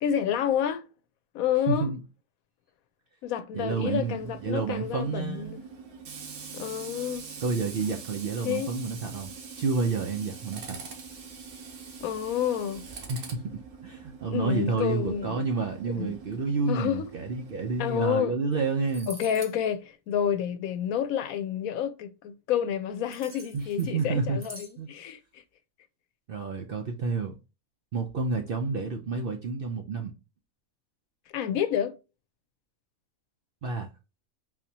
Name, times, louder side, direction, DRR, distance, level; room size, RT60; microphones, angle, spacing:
voice 1, 0.0-0.8 1.3-1.9 3.2-5.7 6.5-7.2 8.4-8.7 12.0-12.8 14.3-15.5 15.9-16.1 16.7-17.1 17.8-18.3 19.1-25.2 31.3-32.0, left 9 dB, 80° left, 1.0 m, -29 dB
voice 2, 1.7-2.0 3.5-5.6 7.4-9.3 9.6-10.8 13.1-19.1 23.5-24.4 24.8-24.9 26.3-27.4 27.9-30.1 33.6-33.9, right 4 dB, 60° right, 0.6 m, -29 dB
Tools, 3.7-18.0, right 5 dB, 90° right, 1.5 m, -44 dB
sound 1, 18.5-18.6 18.8-19.6 23.1-24.0 24.4-24.7, right 1 dB, 15° right, 0.8 m, -45 dB
3.9 x 2.8 x 2.7 m
omnidirectional pair, 1.5 m